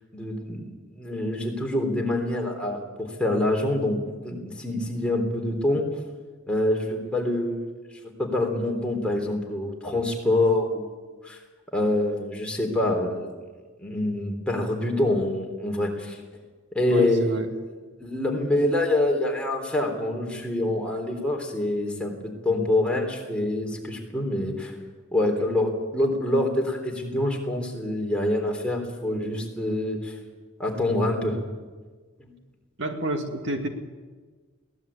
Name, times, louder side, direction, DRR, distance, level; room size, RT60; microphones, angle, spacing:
voice 1, 0.1-5.9 6.5-7.7 8.2-10.9 11.2-11.4 11.7-13.3 13.8-16.2 16.7-17.4 18.0-24.7 25.1-30.2 30.6-31.4 32.2-32.3, left 1 dB, 5° left, 0 dB, 3.6 m, -26 dB
voice 2, 16.9-17.5 32.8-33.7, right 1 dB, 60° right, 5 dB, 2.0 m, -29 dB
23.0 x 18.0 x 8.5 m, 1.4 s
head